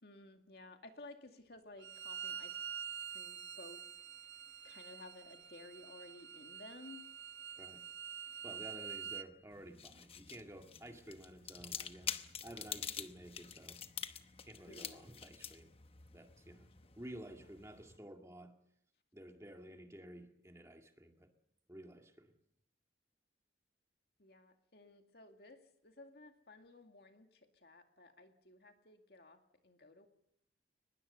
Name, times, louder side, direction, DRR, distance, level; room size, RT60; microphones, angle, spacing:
voice 1, 0.0-2.6 3.1-4.0 4.6-7.1 8.4-8.7 14.6-15.1 16.5-16.7 17.4-17.5 24.2-30.1, left 2 dB, 60° left, 5 dB, 2.2 m, -56 dB
Bowed string instrument, 1.8-9.3, right 8 dB, 65° right, 1.1 m, -47 dB
voice 2, 8.4-12.1 12.4-13.8 14.4-15.7 16.1-16.7 17.0-18.6 19.1-21.3 21.7-22.3, right 1 dB, 15° right, 4 dB, 2.0 m, -52 dB
sound 1, 9.5-18.0, left 8 dB, 30° left, 0.9 m, -47 dB
23.0 x 20.5 x 6.8 m, 0.76 s
head